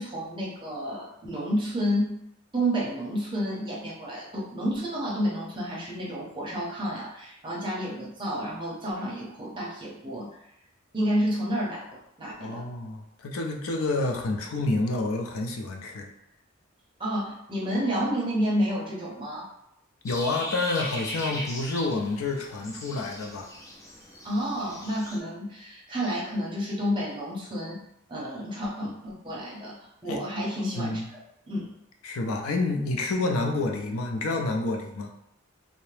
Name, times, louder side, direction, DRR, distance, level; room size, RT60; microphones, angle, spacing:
voice 1, 0.0-2.2 2.5-10.3 10.9-12.7 17.0-19.5 24.2-27.8 28.1-29.8 30.0-31.0 31.5-31.6, equal, 20° right, -5 dB, 0.6 m, -30 dB
voice 2, 12.4-16.1 20.0-23.5 30.1-30.2 30.7-31.1 32.0-35.1, left 2 dB, 85° left, 3 dB, 0.5 m, -29 dB
sound 1, 20.1-25.2, equal, 15° left, 0.3 m, -38 dB
2.7 x 2.0 x 3.2 m, 0.78 s
head